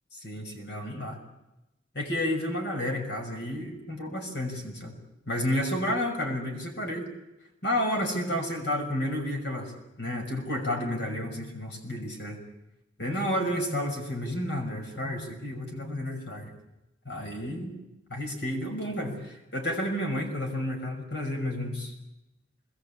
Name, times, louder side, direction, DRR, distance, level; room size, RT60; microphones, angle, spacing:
voice 1, 0.1-1.2 1.9-5.0 5.3-7.1 7.6-9.7 10.0-12.4 13.0-16.5 17.0-17.8 18.1-21.9, left 1 dB, 65° left, 2 dB, 6.2 m, -31 dB
27.0 x 21.0 x 8.6 m, 0.95 s
head